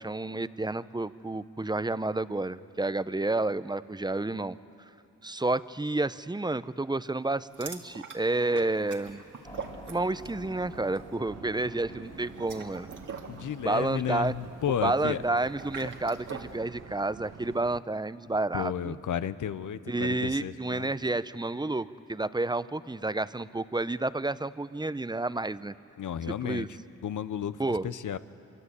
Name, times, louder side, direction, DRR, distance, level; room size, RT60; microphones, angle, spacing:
voice 1, 0.0-4.6 5.2-9.2 9.9-12.9 13.6-14.3 14.8-19.0 19.9-25.7 26.4-26.7 27.6-27.9, right 2 dB, 15° right, 14 dB, 0.8 m, -30 dB
sound 1, 7.5-10.4 10.7-11.0 12.2-16.6, right 6 dB, 70° right, 2.3 m, -44 dB
Keyboard (musical), 9.4-22.2, left 4 dB, 15° left, 2.5 m, -54 dB
sound 2, 9.4-17.8, right 8 dB, 50° right, 0.8 m, -48 dB
voice 2, 13.3-15.2 18.5-20.9 26.0-26.7 27.0-27.6 27.8-28.2, left 9 dB, 70° left, 14 dB, 1.0 m, -32 dB
24.0 x 24.0 x 8.4 m, 2.6 s
cardioid pair, 50°, 32 cm